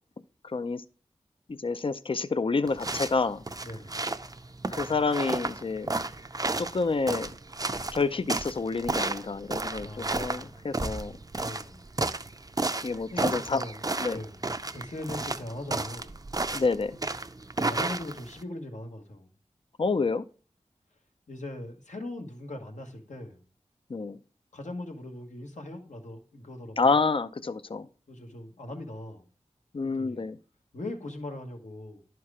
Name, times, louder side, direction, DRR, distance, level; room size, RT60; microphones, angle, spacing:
voice 1, 0.4-0.8 1.6-3.4 4.7-5.9 6.6-7.3 7.9-11.2 12.8-13.6 14.0-14.2 16.5-17.0 19.8-20.2 23.9-24.2 26.8-27.9 29.7-30.4, left 4 dB, 45° left, 0.5 m, -28 dB
sound 1, 2.7-18.4, right 2 dB, 30° right, 0.5 m, -32 dB
voice 2, 3.6-4.0 9.8-10.6 11.4-11.8 13.1-13.8 14.1-14.5 14.7-16.2 17.6-19.3 21.3-23.4 24.5-26.9 28.1-29.3 29.9-30.3 30.7-32.0, left 1 dB, 75° left, 1.4 m, -40 dB
11.0 x 4.6 x 4.8 m
cardioid pair, 40°, 13 cm